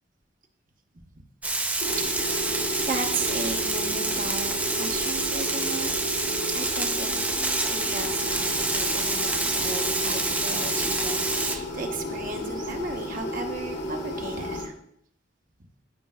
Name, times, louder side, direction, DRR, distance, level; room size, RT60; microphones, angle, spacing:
Frying (food), 1.4-11.6, right 2 dB, 10° right, 0.5 m, -27 dB
sound 1, 1.8-14.6, equal, 90° left, 3.6 m, -33 dB
voice 1, 2.0-5.9 6.5-7.3 7.6-14.7, right 3 dB, 50° right, 3 dB, 0.9 m, -35 dB
15.0 x 5.2 x 2.3 m, 0.68 s
head